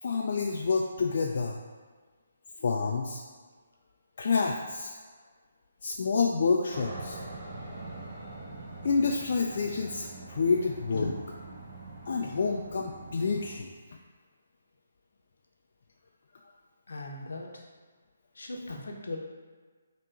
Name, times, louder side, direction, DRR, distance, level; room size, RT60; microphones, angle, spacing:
voice 1, 0.0-1.6 2.6-3.2 4.2-5.0 5.8-7.2 8.8-11.1 12.1-13.7, left 4 dB, 55° left, 0 dB, 0.4 m, -28 dB
Aircraft, 6.7-13.6, right 2 dB, 40° right, 1.3 m, -43 dB
voice 2, 16.9-17.7 18.3-19.2, left 2 dB, 75° left, 1 dB, 0.8 m, -37 dB
3.6 x 2.9 x 4.4 m, 1.5 s
hypercardioid pair, 150°, 0 cm